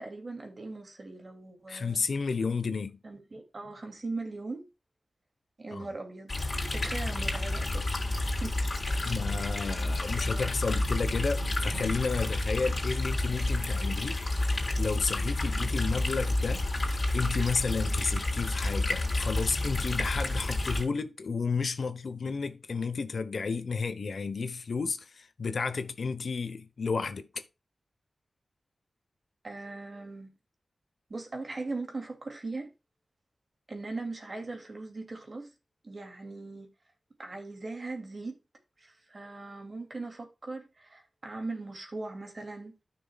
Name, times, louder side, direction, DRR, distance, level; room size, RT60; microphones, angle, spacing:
voice 1, 0.0-2.0 3.0-4.6 5.6-8.6 8.9-9.1 10.1-10.7 29.4-30.3 31.1-32.7 33.7-35.5 35.8-36.7 37.2-38.3 38.8-42.7, right 3 dB, 45° right, 2.6 m, -40 dB
voice 2, 1.7-3.0 5.7-5.9 9.0-27.4, left 4 dB, 75° left, 1.0 m, -32 dB
sound 1, 6.3-20.8, left 2 dB, 40° left, 3.7 m, -30 dB
13.0 x 6.2 x 2.4 m
wide cardioid pair, 105°, 0 cm